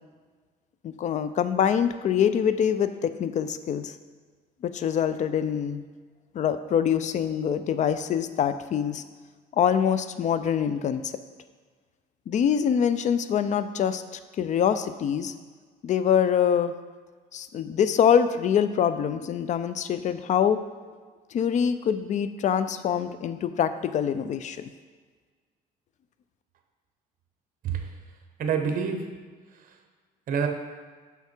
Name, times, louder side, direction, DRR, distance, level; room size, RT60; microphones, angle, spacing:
voice 1, 0.8-4.0 4.6-5.8 6.3-9.0 9.5-11.2 12.3-14.0 14.4-15.3 15.8-16.7 17.3-20.6 21.3-24.6, left 8 dB, 45° left, 11 dB, 0.4 m, -24 dB
voice 2, 28.4-29.0 29.5-29.8 30.3-30.5, right 6 dB, 55° right, 5 dB, 0.9 m, -27 dB
5.8 x 5.7 x 4.5 m, 1.5 s
cardioid pair, 110°, 17 cm